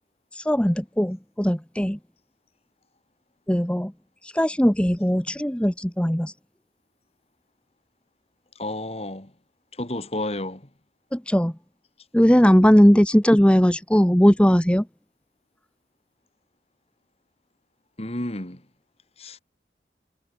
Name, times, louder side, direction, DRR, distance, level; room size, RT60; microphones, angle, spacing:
voice 1, 0.3-2.0 3.5-3.9 4.2-6.3 11.1-11.5 12.1-14.9, equal, 5° left, 1.0 m, -19 dB
voice 2, 8.6-9.3 9.7-10.7 18.0-18.6 19.2-19.4, left 1 dB, 35° left, 2.5 m, -31 dB
head